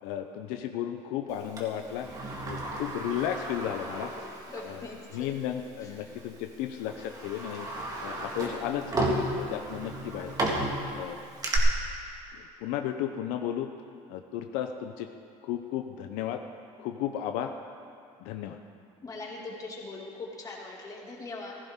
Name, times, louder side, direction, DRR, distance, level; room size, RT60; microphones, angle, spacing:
voice 1, 0.0-2.1 2.4-4.1 4.6-10.6 10.9-11.2 12.3-13.7 14.1-15.1 15.4-16.4 16.8-17.5 18.2-18.6, left 10 dB, 85° left, 6 dB, 0.7 m, -34 dB
Sliding door, 1.6-4.8 5.2-5.3 6.2-6.4 6.9-11.6, right 2 dB, 25° right, 2.0 m, -33 dB
voice 2, 4.5-5.2 19.0-21.6, left 3 dB, 25° left, -2 dB, 2.4 m, -41 dB
15.5 x 14.5 x 3.7 m, 2.4 s
cardioid pair, 130°, 14 cm